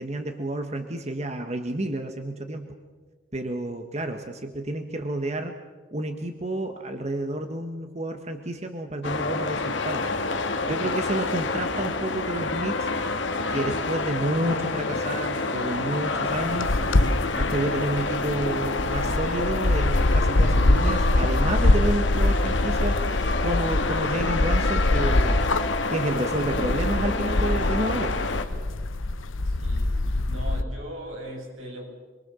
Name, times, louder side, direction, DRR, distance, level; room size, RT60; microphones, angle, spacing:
voice 1, 0.0-2.7 3.3-5.6 5.9-10.1 10.6-12.9 13.5-16.7 17.4-23.1 23.4-25.4 25.9-28.1, right 1 dB, 35° right, 5 dB, 1.5 m, -30 dB
sound 1, 9.0-28.4, left 3 dB, 65° left, 2.0 m, -28 dB
sound 2, 16.3-30.6, left 2 dB, 85° left, 1.0 m, -24 dB
voice 2, 29.4-30.0 30.3-31.8, equal, 85° right, 0 dB, 7.8 m, -38 dB
27.5 x 22.5 x 7.1 m, 1.4 s
head